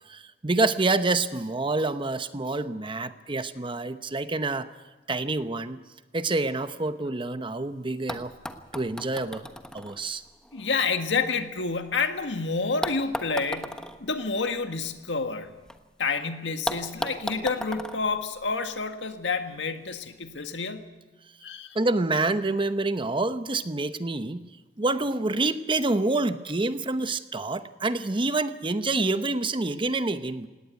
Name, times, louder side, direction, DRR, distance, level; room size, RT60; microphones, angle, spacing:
voice 1, 0.1-4.7 5.1-5.8 6.1-8.3 8.7-9.5 9.7-10.2 21.7-24.4 24.8-30.5, right 2 dB, 30° right, 11 dB, 0.9 m, -27 dB
sound 1, 7.6-7.7 8.1-12.2 12.8-15.8 16.1-16.2 16.7-19.0 20.0-20.1, equal, 5° left, 1.2 m, -37 dB
voice 2, 10.5-15.5 16.0-20.9 21.4-21.7, left 4 dB, 80° left, 7 dB, 1.7 m, -29 dB
18.5 x 18.0 x 9.2 m, 1.2 s
head